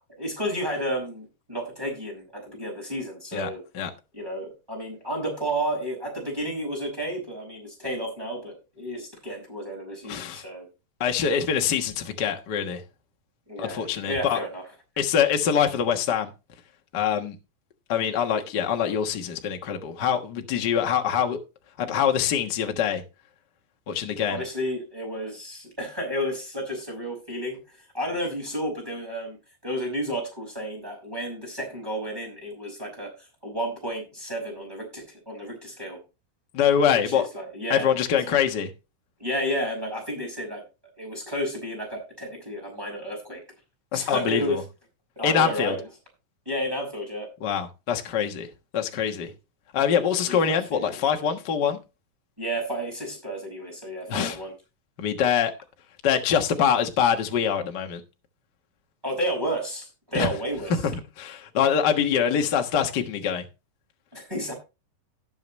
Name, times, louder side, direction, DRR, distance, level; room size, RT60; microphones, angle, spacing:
voice 1, 0.0-3.6 4.1-10.7 13.5-14.6 24.3-29.4 29.6-36.0 37.1-38.0 39.2-40.6 41.0-43.4 43.9-44.6 45.2-45.8 46.5-47.3 50.0-50.9 52.4-54.5 59.0-60.7 64.1-64.5, equal, 5° right, 5.6 m, -32 dB
voice 2, 3.3-3.9 10.0-10.4 11.0-12.8 13.6-14.4 15.0-16.3 16.9-17.3 17.9-21.4 21.8-23.0 23.9-24.4 36.5-37.3 37.7-38.7 43.9-44.6 45.2-45.7 47.4-48.5 48.7-49.3 49.7-51.8 54.1-54.4 55.0-55.5 56.0-58.0 60.1-60.3 60.8-63.5, left 8 dB, 55° left, 1.1 m, -24 dB
18.0 x 6.9 x 3.1 m
omnidirectional pair, 4.0 m